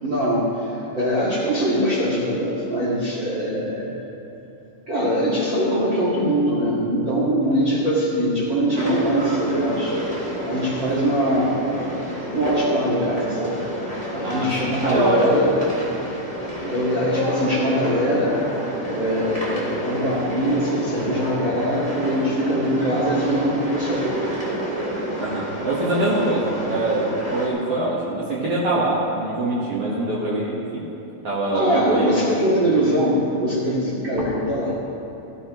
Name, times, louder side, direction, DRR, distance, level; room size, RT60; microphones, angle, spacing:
voice 1, 0.0-4.0 4.9-10.0 10.5-11.7 12.3-13.6 14.1-15.6 16.6-18.4 18.9-24.1 31.5-34.8, equal, 50° right, -6 dB, 1.4 m, -22 dB
sound 1, 8.7-27.5, equal, 15° right, 1.6 m, -29 dB
voice 2, 14.2-15.2 25.2-27.1 27.3-30.8 31.2-32.1, right 2 dB, 80° right, -7 dB, 1.3 m, -24 dB
17.5 x 13.5 x 3.1 m, 2.9 s
omnidirectional pair, 5.2 m